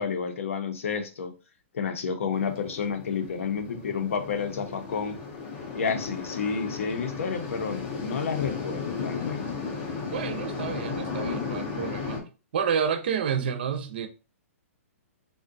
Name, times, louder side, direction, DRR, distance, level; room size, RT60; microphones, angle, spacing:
voice 1, 0.0-1.3 1.7-5.2 5.7-9.6, left 6 dB, 65° left, 0.6 m, -30 dB
sound 1, 2.3-12.2, left 5 dB, 20° left, 0.5 m, -35 dB
voice 2, 10.1-12.3 12.5-14.1, right 7 dB, 45° right, 0.4 m, -29 dB
3.6 x 2.1 x 2.5 m
hypercardioid pair, 170°, 8 cm